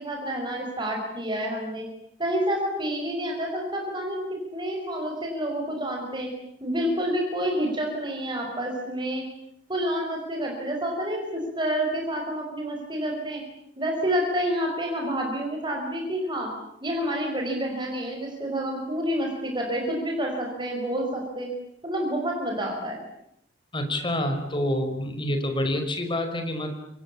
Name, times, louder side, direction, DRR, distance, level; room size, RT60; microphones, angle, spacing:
voice 1, 0.0-1.8 2.2-4.2 4.5-6.3 6.6-9.2 9.7-13.4 13.8-16.5 16.8-21.5 21.8-23.0, equal, 25° right, 1 dB, 5.7 m, -28 dB
voice 2, 23.7-26.7, left 1 dB, 25° left, 6 dB, 5.3 m, -27 dB
28.0 x 25.0 x 8.6 m, 0.74 s
head